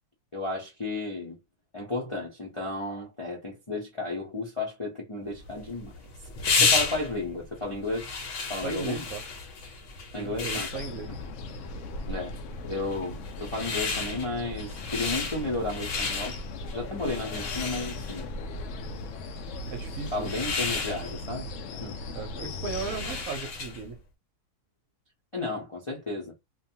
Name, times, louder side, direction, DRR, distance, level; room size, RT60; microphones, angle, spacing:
voice 1, 0.3-1.4 1.7-6.0 6.4-8.1 8.5-9.1 10.1-10.7 12.1-12.4 12.6-16.4 16.7-18.3 18.9-19.0 20.1-22.0 25.3-26.3, left 2 dB, 35° left, 0.5 m, -33 dB
sound 1, 5.4-23.9, left 4 dB, 55° left, 1.0 m, -33 dB
voice 2, 8.6-9.2 10.1-11.1 19.7-20.3 22.1-24.0, right 4 dB, 65° right, 1.0 m, -36 dB
sound 2, 10.7-23.3, left 2 dB, 75° left, 0.7 m, -38 dB
2.7 x 2.3 x 2.7 m
omnidirectional pair, 1.8 m